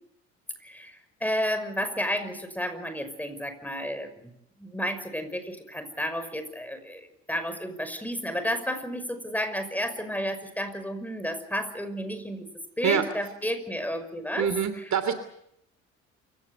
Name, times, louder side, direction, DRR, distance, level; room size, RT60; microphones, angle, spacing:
voice 1, 0.6-4.3 4.6-12.5 12.8-14.5 14.8-15.1, equal, 5° left, 9 dB, 5.8 m, -32 dB
voice 2, 14.4-15.1, right 8 dB, 50° right, 11 dB, 3.0 m, -25 dB
28.0 x 17.0 x 8.2 m, 0.75 s
hypercardioid pair, 60°, 37 cm